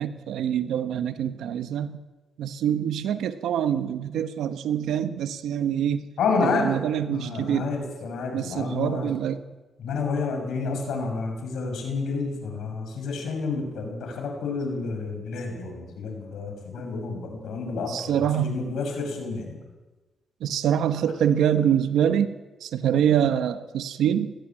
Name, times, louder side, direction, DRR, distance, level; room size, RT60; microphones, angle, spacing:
voice 1, 0.0-2.0 2.4-6.1 6.4-7.7 8.3-9.4 17.9-18.6 20.4-24.3, right 9 dB, 90° right, 10 dB, 1.1 m, -25 dB
voice 2, 6.2-6.8 7.1-9.1 9.8-19.6, left 4 dB, 80° left, 4 dB, 6.0 m, -29 dB
20.0 x 14.5 x 9.0 m, 1.2 s
cardioid pair, 75°, 0 cm